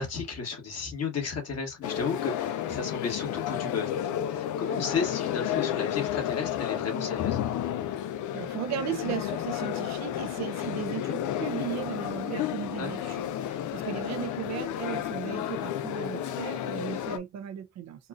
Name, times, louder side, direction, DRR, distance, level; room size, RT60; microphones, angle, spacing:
voice 1, 0.0-7.5 12.8-13.2 16.2-16.4, left 5 dB, 55° left, 1.8 m, -34 dB
sound 1, 1.8-17.2, left 11 dB, 75° left, 0.6 m, -32 dB
voice 2, 8.3-18.1, right 9 dB, 60° right, 0.6 m, -36 dB
4.2 x 2.4 x 2.4 m
cardioid pair, 90°, 30 cm